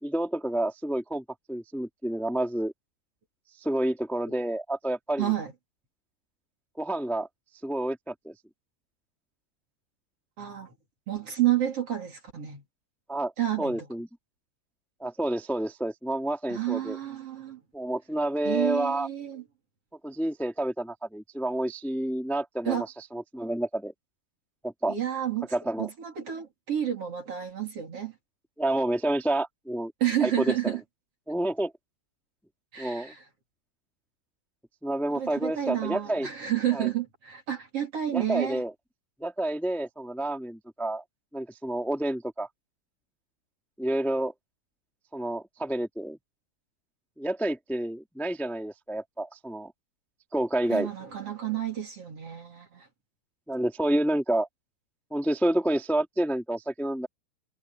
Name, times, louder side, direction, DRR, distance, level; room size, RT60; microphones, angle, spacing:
voice 1, 0.0-2.7 3.6-5.3 6.8-7.3 7.6-8.3 13.1-13.3 13.6-14.1 15.0-17.0 17.7-19.1 20.0-23.9 24.6-25.0 25.5-25.9 28.6-29.9 30.2-30.8 31.3-31.7 32.8-33.1 34.8-36.3 36.7-36.9 38.1-38.7 39.2-41.0 41.3-42.5 43.8-44.3 45.1-46.2 47.2-49.7 50.3-50.9 53.5-54.5 55.1-57.1, right 1 dB, ahead, 1.2 m, -29 dB
voice 2, 5.2-5.5 10.4-10.7 11.1-12.6 13.4-13.9 16.5-17.6 18.4-19.4 22.6-22.9 24.9-25.5 25.8-28.1 30.0-30.8 32.7-33.2 35.2-38.6 50.7-52.9, right 11 dB, 35° right, 3.0 m, -30 dB
omnidirectional pair, 5.7 m